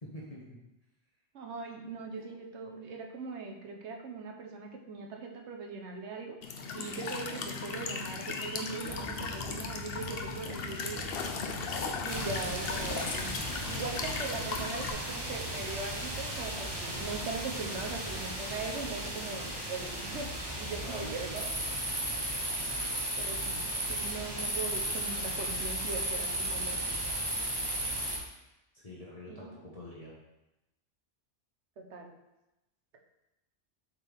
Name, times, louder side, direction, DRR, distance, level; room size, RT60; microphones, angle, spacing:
voice 1, 0.0-0.6 20.8-21.3 28.8-30.1, left 1 dB, 35° left, -6 dB, 1.3 m, -45 dB
voice 2, 1.3-6.4 6.7-11.0 12.0-13.4 13.6-20.3 20.5-21.5 23.2-27.0 29.3-29.5 31.8-32.1, right 4 dB, 75° right, 2 dB, 1.2 m, -40 dB
Walk footsteps / Chirp tweet / Stream, 6.4-14.9, left 4 dB, 60° left, 0.9 m, -37 dB
sound 1, 8.9-18.3, left 1 dB, 80° left, 2.3 m, -45 dB
sound 2, 12.1-28.2, right 1 dB, 20° right, 1.1 m, -35 dB
7.7 x 4.6 x 3.5 m, 0.94 s
omnidirectional pair, 1.2 m